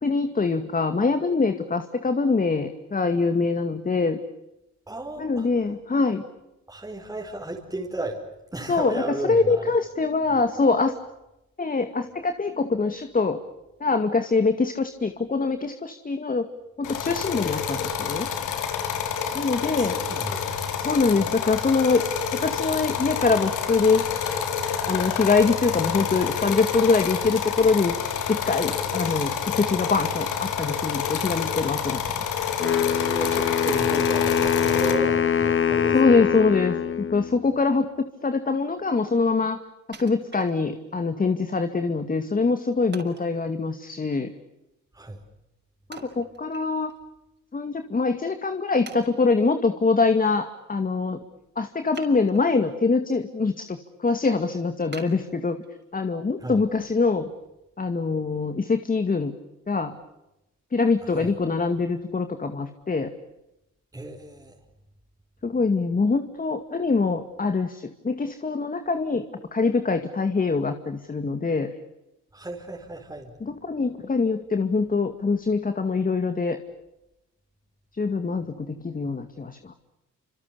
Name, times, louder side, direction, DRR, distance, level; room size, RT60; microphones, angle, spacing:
voice 1, 0.0-4.2 5.2-6.2 8.7-10.9 11.6-13.4 13.8-16.5 16.8-18.3 19.3-19.9 20.8-22.1 22.4-24.0 24.9-27.9 28.3-32.2 35.9-36.7 37.1-37.9 38.2-39.6 40.0-44.3 45.9-46.9 47.5-51.2 51.6-53.8 54.0-55.6 55.9-57.3 57.8-59.3 59.7-59.9 60.7-63.1 65.4-71.7 73.4-76.6 78.0-78.5 78.8-79.6, left 4 dB, 30° left, 8 dB, 2.2 m, -24 dB
voice 2, 4.9-5.5 6.7-8.2 8.5-9.7 19.7-20.6 21.1-21.3 33.0-36.2 44.9-45.2 56.4-56.6 61.0-61.3 63.9-64.6 72.3-73.3, right 2 dB, 10° right, 0 dB, 5.1 m, -34 dB
sound 1, 16.8-34.9, left 7 dB, 90° left, 4.4 m, -28 dB
Wind instrument woodwind instrument, 32.6-37.6, left 7 dB, 45° left, 1.6 m, -24 dB
Wood, 39.9-41.0 41.5-41.6 42.9-43.3 45.9-47.0 47.4-47.5 48.1-48.2 48.9-49.5 51.9-52.7 53.2-53.6 54.0-54.1 54.9-55.9 56.4-56.5, right 4 dB, 35° right, 6.2 m, -45 dB
28.5 x 27.5 x 6.9 m, 0.92 s
cardioid pair, 90°, 30 cm